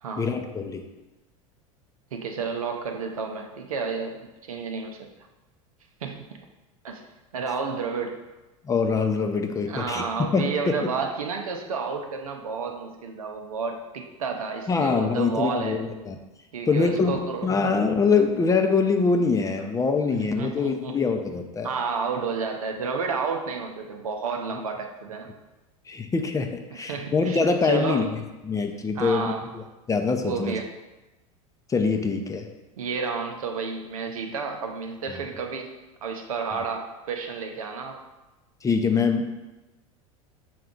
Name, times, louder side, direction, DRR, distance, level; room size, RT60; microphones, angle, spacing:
voice 1, 0.2-0.8 8.6-10.5 14.7-16.2 16.7-17.1 17.4-21.7 25.9-28.1 28.4-30.5 31.7-32.5 38.6-39.3, left 4 dB, 20° left, 5 dB, 0.5 m, -24 dB
voice 2, 2.1-4.1 4.4-5.1 6.0-6.4 6.8-7.0 7.3-8.2 9.7-15.8 16.5-17.5 19.6-19.7 20.1-20.9 21.6-25.3 26.9-28.1 29.0-29.5 30.2-30.7 32.8-35.7 36.0-38.0, right 5 dB, 85° right, 3 dB, 0.6 m, -31 dB
5.8 x 2.3 x 3.7 m, 1.0 s
hypercardioid pair, 90°, 18 cm